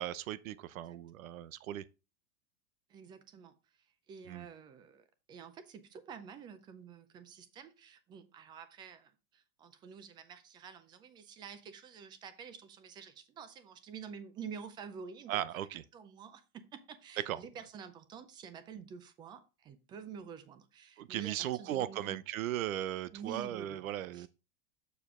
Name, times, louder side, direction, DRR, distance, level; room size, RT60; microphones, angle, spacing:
voice 1, 0.0-1.8 4.3-4.5 15.3-15.8 17.3-17.4 21.0-24.3, right 12 dB, 90° right, 0.8 m, -37 dB
voice 2, 2.9-3.5 4.1-15.5 15.9-22.2 23.1-23.8 24.1-24.3, right 6 dB, 10° right, 0.4 m, -49 dB
7.0 x 6.8 x 3.6 m
supercardioid pair, 155°, 40 cm